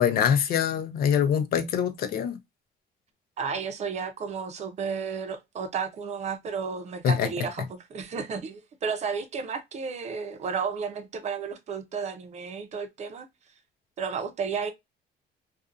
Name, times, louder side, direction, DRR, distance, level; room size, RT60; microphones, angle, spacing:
voice 1, 0.0-2.4 7.0-7.3, left 8 dB, 60° left, 0.6 m, -24 dB
voice 2, 3.4-13.3 14.0-14.7, right 6 dB, 40° right, 0.7 m, -32 dB
2.6 x 2.4 x 2.4 m
cardioid pair, 110°, 17 cm